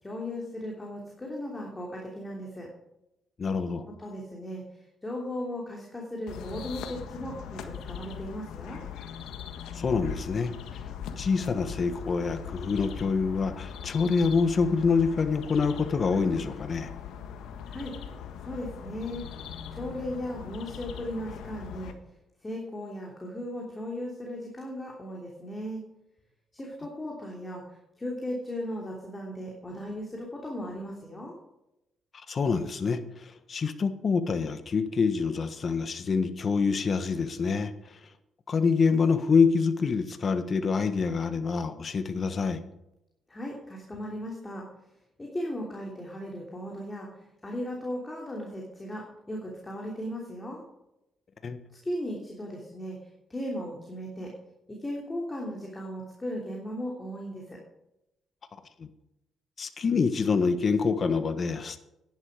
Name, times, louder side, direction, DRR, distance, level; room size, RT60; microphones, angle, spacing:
voice 1, 0.0-2.7 4.0-8.8 17.7-17.9 18.4-19.2 19.7-21.9 22.4-25.8 26.5-31.4 43.3-44.7 45.2-50.6 51.8-53.0 53.3-54.3 54.8-57.6, equal, 20° left, -2 dB, 3.1 m, -37 dB
voice 2, 3.4-3.8 9.7-10.5 11.2-16.9 32.3-38.0 38.5-42.6 51.4-51.6 58.8-58.9 59.6-61.8, left 5 dB, 45° left, 10 dB, 1.3 m, -26 dB
sound 1, 6.3-21.9, left 8 dB, 85° left, 1.4 m, -40 dB
11.0 x 10.5 x 5.0 m, 0.87 s
cardioid pair, 90°, 0 cm